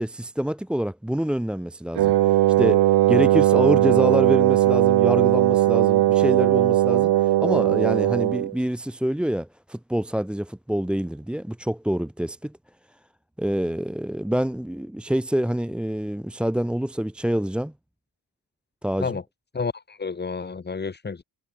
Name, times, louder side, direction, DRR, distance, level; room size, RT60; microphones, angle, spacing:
voice 1, 0.0-12.5 13.4-17.7 18.8-19.2, equal, ahead, 0.8 m, -26 dB
Wind instrument woodwind instrument, 2.0-8.5, right 14 dB, 80° right, 1.3 m, -19 dB
voice 2, 19.5-21.2, left 4 dB, 25° left, 4.2 m, -30 dB
cardioid pair, 150°, 40 cm